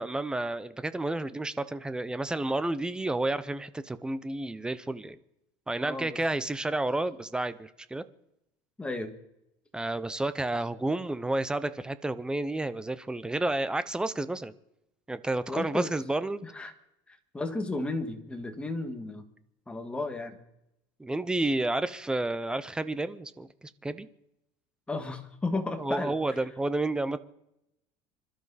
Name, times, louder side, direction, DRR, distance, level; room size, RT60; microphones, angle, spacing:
voice 1, 0.0-5.2 5.7-8.1 9.7-14.5 15.1-16.4 21.0-23.5 23.8-24.1 25.8-27.2, right 2 dB, 5° right, 14 dB, 0.7 m, -30 dB
voice 2, 5.8-6.2 8.8-9.1 15.5-16.0 16.4-16.7 17.1-19.3 19.7-20.4 24.9-26.5, left 2 dB, 10° left, 5 dB, 1.7 m, -34 dB
26.0 x 12.5 x 4.1 m, 0.84 s
cardioid pair, 155°, 12 cm